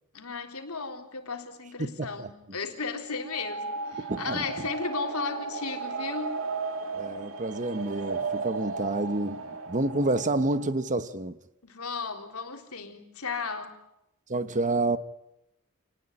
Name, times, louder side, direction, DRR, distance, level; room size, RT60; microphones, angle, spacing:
voice 1, 0.1-6.4 11.6-13.7, left 4 dB, 80° left, 3.6 m, -35 dB
voice 2, 1.8-2.3 4.1-4.4 6.9-11.3 14.3-15.0, right 2 dB, 35° right, 1.1 m, -29 dB
sound 1, 3.2-10.8, right 4 dB, 65° right, 2.1 m, -35 dB
28.0 x 19.0 x 9.8 m
head